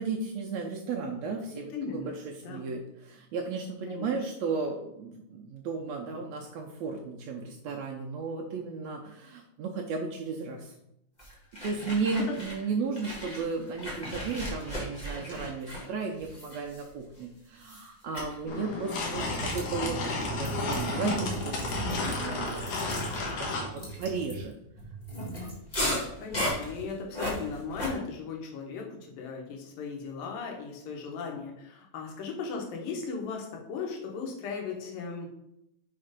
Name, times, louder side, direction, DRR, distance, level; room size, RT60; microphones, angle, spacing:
voice 1, 0.0-10.7 11.6-22.6 22.9-24.5, right 4 dB, 80° right, 0 dB, 1.6 m, -34 dB
voice 2, 1.5-2.1 2.4-2.6 3.9-4.1 12.1-12.4 26.2-35.3, left 5 dB, 85° left, 0 dB, 2.9 m, -37 dB
sound 1, 11.2-12.7 13.0-17.2 17.6-17.9 18.1-18.4 19.0-27.9, equal, 35° left, 0.6 m, -36 dB
sound 2, 18.5-23.7, left 3 dB, 70° left, 2.6 m, -33 dB
5.7 x 4.4 x 5.0 m, 0.80 s
omnidirectional pair, 3.9 m